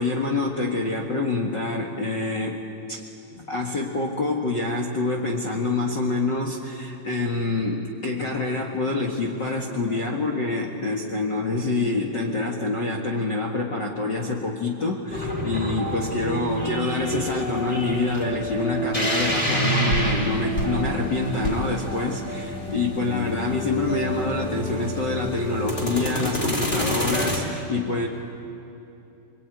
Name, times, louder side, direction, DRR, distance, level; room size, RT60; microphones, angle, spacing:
voice 1, 0.0-2.6 2.9-3.0 3.3-28.1, left 3 dB, 45° left, 1 dB, 1.6 m, -26 dB
sound 1, 15.1-27.4, equal, 15° left, 3.8 m, -27 dB
25.5 x 24.0 x 9.3 m, 2.8 s
omnidirectional pair, 4.4 m